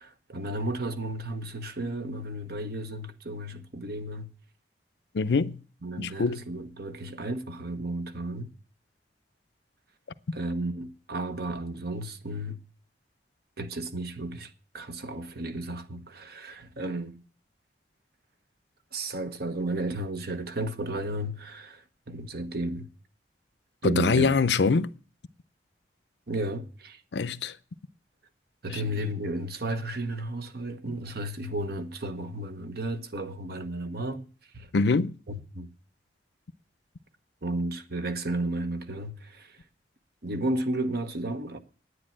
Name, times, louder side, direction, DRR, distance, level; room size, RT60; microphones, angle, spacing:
voice 1, 0.0-4.3 5.8-8.5 10.3-12.6 13.6-17.2 18.9-22.9 23.8-24.3 26.3-27.0 28.6-34.3 34.5-34.7 35.3-35.7 37.4-39.6 40.2-41.6, right 1 dB, 60° right, 1.1 m, -33 dB
voice 2, 5.1-5.6 6.0-6.4 23.8-24.9 27.1-27.5 28.7-28.8 34.7-35.1, left 4 dB, 70° left, 0.5 m, -24 dB
9.8 x 9.5 x 7.4 m
head